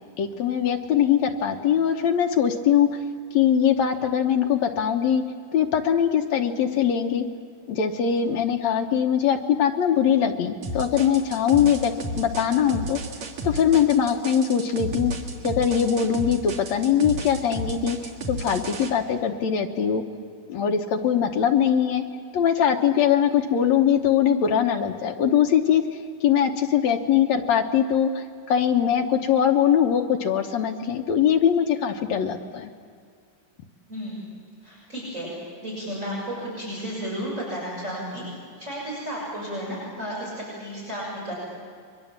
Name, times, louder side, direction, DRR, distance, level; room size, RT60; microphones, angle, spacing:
voice 1, 0.2-3.0 3.3-5.2 5.5-7.2 7.7-11.9 12.2-13.0 13.4-15.1 15.4-18.0 18.3-20.0 20.5-22.0 22.3-25.8 26.2-32.7, left 8 dB, 65° left, 4 dB, 2.1 m, -21 dB
sound 1, 10.6-18.9, right 2 dB, 55° right, 2.9 m, -33 dB
voice 2, 33.9-34.2 34.6-35.3 35.6-38.2 38.6-41.3, equal, 20° right, -6 dB, 6.8 m, -33 dB
30.0 x 23.5 x 7.4 m, 2.2 s
omnidirectional pair, 3.7 m